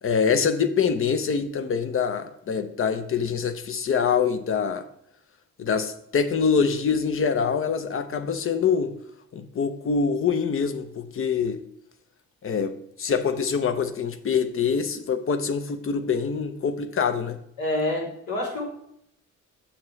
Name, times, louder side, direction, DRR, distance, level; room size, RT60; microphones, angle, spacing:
voice 1, 0.0-4.9 5.6-8.9 9.3-11.6 12.4-17.4, left 6 dB, 45° left, 10 dB, 0.8 m, -25 dB
voice 2, 17.6-18.6, left 1 dB, 75° left, -3 dB, 3.2 m, -27 dB
7.2 x 7.1 x 3.2 m, 0.73 s
cardioid pair, 90°, 30 cm